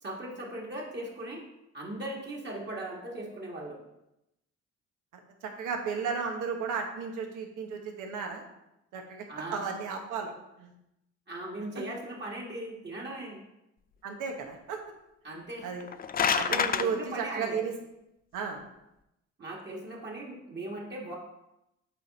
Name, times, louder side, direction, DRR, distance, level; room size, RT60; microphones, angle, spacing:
voice 1, 0.0-1.4 1.7-3.8 9.3-9.6 11.3-13.4 15.2-15.7 16.4-17.6 19.4-21.2, right 1 dB, 35° right, -3 dB, 1.6 m, -39 dB
voice 2, 5.4-8.4 8.9-9.2 9.5-10.3 10.6-10.7 14.0-14.8 15.6-15.8 16.3-17.7 18.3-18.6, right 5 dB, 90° right, 3 dB, 1.2 m, -34 dB
sound 1, 15.7-16.9, left 7 dB, 30° left, 0.4 m, -27 dB
8.2 x 3.7 x 4.0 m, 0.87 s
cardioid pair, 90°, 30 cm